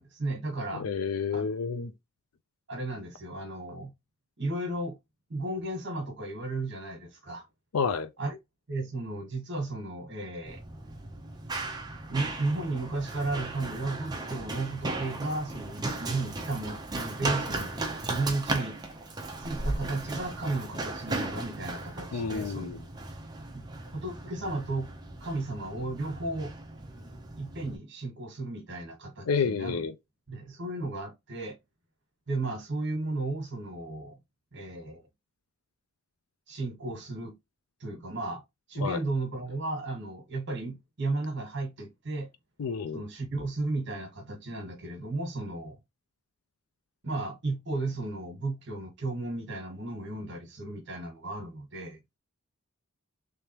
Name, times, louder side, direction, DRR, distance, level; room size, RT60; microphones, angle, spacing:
voice 1, 0.0-0.8 1.3-1.5 2.7-3.9 4.4-4.9 5.3-7.4 8.2-8.4 8.7-10.6 12.1-17.7 18.1-18.8 19.4-22.7 23.5-23.6 23.9-24.9 25.2-26.5 27.4-29.8 30.3-31.6 32.3-34.2 34.5-35.0 36.5-37.3 37.8-38.4 38.7-42.3 42.9-45.8 47.0-52.0, right 2 dB, 55° right, 1.4 m, -34 dB
voice 2, 0.7-1.9 7.7-8.1 22.1-22.8 29.3-29.9 38.8-39.0 42.6-43.0, left 5 dB, 90° left, 0.5 m, -30 dB
Run, 10.5-27.8, right 2 dB, 20° right, 0.7 m, -36 dB
3.4 x 3.4 x 2.9 m
head